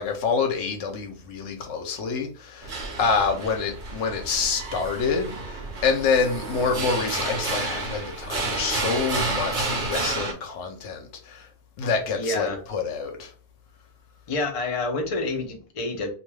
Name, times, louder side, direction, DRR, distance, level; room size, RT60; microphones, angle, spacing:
voice 1, 0.0-11.5 11.8-13.3, left 5 dB, 70° left, 0.9 m, -27 dB
sound 1, 2.6-10.3, right 3 dB, 50° right, 0.7 m, -30 dB
voice 2, 12.1-12.6 14.3-16.1, left 2 dB, 50° left, 0.4 m, -28 dB
2.3 x 2.2 x 3.1 m
omnidirectional pair, 1.2 m